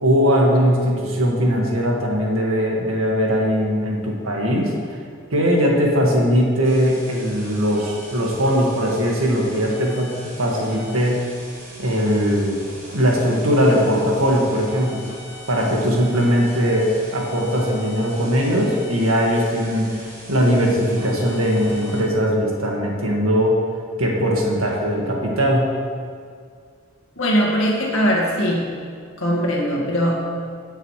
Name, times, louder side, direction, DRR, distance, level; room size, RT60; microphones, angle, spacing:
voice 1, 0.0-4.7 5.3-11.2 11.8-12.6 12.9-15.0 15.5-19.9 20.3-23.5 24.0-25.7, equal, 75° right, -1 dB, 1.8 m, -20 dB
sound 1, 6.6-22.0, equal, 15° right, 2.7 m, -40 dB
voice 2, 27.2-28.7 29.2-30.2, equal, 70° left, -2 dB, 1.8 m, -20 dB
17.5 x 6.7 x 3.2 m, 2.1 s
head